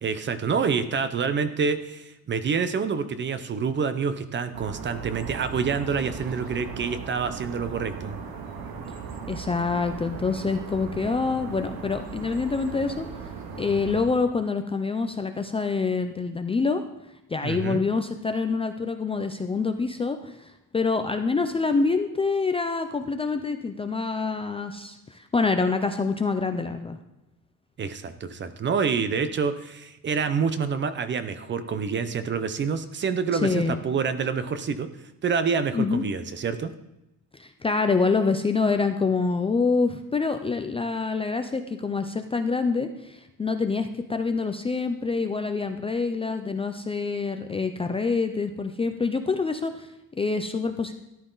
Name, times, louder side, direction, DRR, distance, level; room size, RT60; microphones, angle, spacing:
voice 1, 0.0-8.2 17.4-17.8 27.8-34.9 35.2-36.7, right 5 dB, 30° right, 11 dB, 0.7 m, -27 dB
sound 1, 4.5-14.0, right 5 dB, 80° right, 2.2 m, -38 dB
voice 2, 9.3-13.1 13.6-16.8 17.3-27.0 33.3-33.8 35.7-36.0 37.3-50.9, left 4 dB, 15° left, 7 dB, 0.4 m, -26 dB
13.5 x 11.5 x 3.9 m, 0.88 s
cardioid pair, 180°, 35 cm